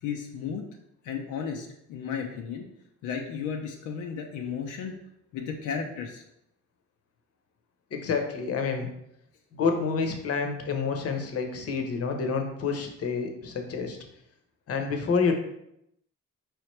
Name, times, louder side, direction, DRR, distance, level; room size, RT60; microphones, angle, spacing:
voice 1, 0.0-0.6 1.0-2.7 3.0-5.0 5.3-6.2, left 6 dB, 90° left, 2 dB, 0.6 m, -34 dB
voice 2, 7.9-8.9 9.5-14.0 14.7-15.3, left 5 dB, 50° left, 4 dB, 0.8 m, -28 dB
4.7 x 3.2 x 3.2 m, 0.79 s
cardioid pair, 90°, 30 cm